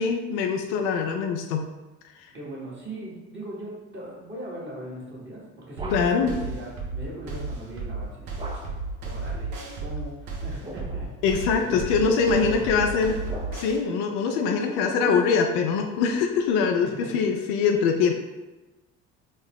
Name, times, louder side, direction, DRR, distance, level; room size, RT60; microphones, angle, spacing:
voice 1, 0.0-1.7 5.9-6.3 11.2-13.2 13.5-18.1, left 5 dB, 70° left, 4 dB, 0.5 m, -23 dB
voice 2, 2.3-8.4 9.0-11.1 11.6-12.9 14.4-15.4 16.8-17.1 18.1-18.2, right 1 dB, 30° right, -5 dB, 1.4 m, -39 dB
sound 1, 5.2-6.4 8.4-9.0 10.3-11.2 12.0-13.9, equal, 15° right, 0.4 m, -42 dB
sound 2, 5.8-13.8, right 3 dB, 60° right, 1.0 m, -33 dB
3.9 x 2.0 x 3.5 m, 1.1 s
hypercardioid pair, 65°, 36 cm